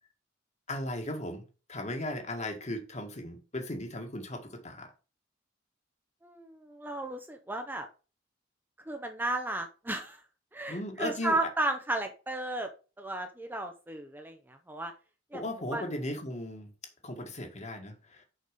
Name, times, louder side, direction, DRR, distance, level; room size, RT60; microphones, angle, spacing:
voice 1, 0.7-4.9 10.7-11.4 15.3-16.7 17.0-18.2, left 1 dB, 35° left, 1.8 m, -37 dB
voice 2, 6.2-7.9 8.9-10.2 10.5-12.7 13.0-14.9 15.3-15.4 15.7-15.8, right 2 dB, 10° right, 0.7 m, -34 dB
6.6 x 5.3 x 5.1 m
head